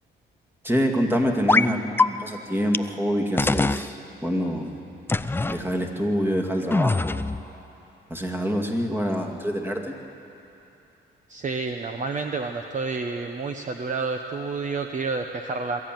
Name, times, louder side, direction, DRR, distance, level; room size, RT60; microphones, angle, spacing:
voice 1, 0.6-3.9 4.2-4.7 5.5-7.2 8.1-9.9, equal, 10° right, 2 dB, 2.3 m, -26 dB
sound 1, 1.5-1.7 2.0-2.1 2.7-2.8 3.4-3.9 5.1-5.6 6.7-7.4, left 3 dB, 10° left, 0.4 m, -22 dB
voice 2, 11.3-15.8, right 4 dB, 40° right, 5 dB, 1.0 m, -29 dB
22.0 x 13.5 x 9.2 m, 2.9 s
cardioid pair, 90°, 20 cm